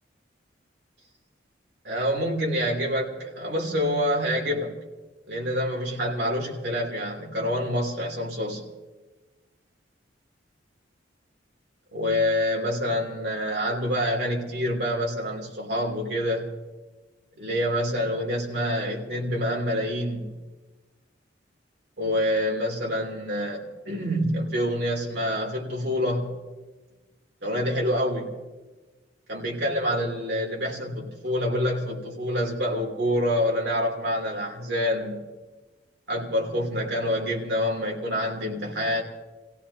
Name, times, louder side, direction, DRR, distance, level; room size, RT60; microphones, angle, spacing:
voice 1, 1.8-4.8 5.3-8.6 11.9-16.5 17.4-20.4 22.0-26.3 27.4-28.3 29.3-35.2 36.1-39.0, equal, 65° right, -1 dB, 3.2 m, -27 dB
29.0 x 16.5 x 2.8 m, 1.2 s
head